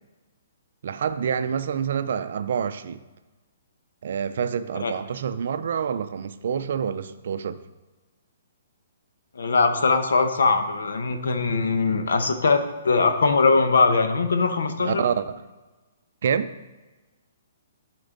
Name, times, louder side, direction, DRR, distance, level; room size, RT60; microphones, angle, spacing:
voice 1, 0.8-3.0 4.0-7.6 14.8-15.2 16.2-16.5, right 7 dB, 50° right, 11 dB, 0.4 m, -27 dB
voice 2, 9.3-15.0, left 4 dB, 90° left, 7 dB, 0.9 m, -21 dB
11.5 x 4.5 x 3.9 m, 1.2 s
hypercardioid pair, 175°, 0 cm